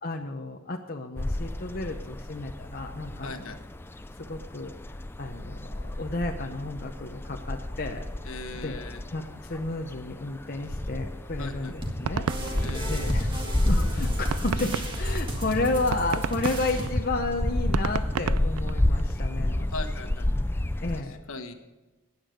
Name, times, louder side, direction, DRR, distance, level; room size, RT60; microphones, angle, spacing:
voice 1, 0.0-3.5 4.3-4.7 5.2-19.7 20.8-21.2, left 2 dB, 40° left, 2 dB, 0.8 m, -32 dB
sound 1, 1.2-21.0, left 1 dB, 10° left, 0.4 m, -30 dB
voice 2, 3.2-3.6 8.2-9.0 11.4-11.7 12.6-13.1 19.7-20.3 21.0-21.5, left 3 dB, 70° left, 7 dB, 1.3 m, -39 dB
sound 2, 11.5-13.5 13.9-14.0 14.3-19.2, right 8 dB, 80° right, 0.3 m, -32 dB
sound 3, 11.8-16.9, right 1 dB, 20° right, 1.8 m, -34 dB
15.5 x 9.7 x 5.1 m, 1.1 s
head